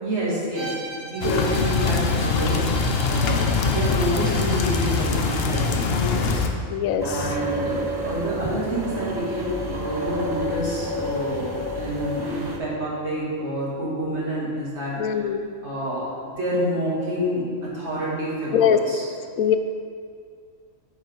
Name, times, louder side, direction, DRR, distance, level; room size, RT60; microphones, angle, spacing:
voice 1, 0.0-0.7 1.0-6.4 7.0-15.3 15.6-19.0, right 1 dB, 55° right, -7 dB, 2.3 m, -28 dB
Bowed string instrument, 0.5-6.0, right 4 dB, 70° right, 1.3 m, -38 dB
sound 1, 1.2-6.5, left 4 dB, 55° left, 0.8 m, -23 dB
voice 2, 6.7-7.3 15.0-15.5 18.5-18.8 19.4-19.6, left 8 dB, 90° left, 8 dB, 1.0 m, -22 dB
sound 2, 7.0-12.6, equal, 35° right, 0.4 m, -30 dB
9.4 x 4.8 x 4.5 m, 2.1 s
omnidirectional pair, 1.4 m